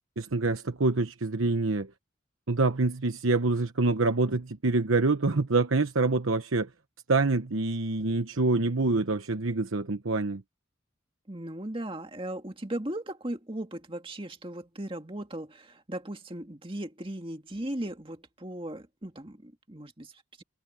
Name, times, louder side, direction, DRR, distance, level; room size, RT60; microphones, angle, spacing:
voice 1, 0.2-1.9 2.5-6.7 7.1-10.4, right 3 dB, 90° right, 1.1 m, -26 dB
voice 2, 11.3-20.4, right 1 dB, 25° right, 2.1 m, -37 dB
head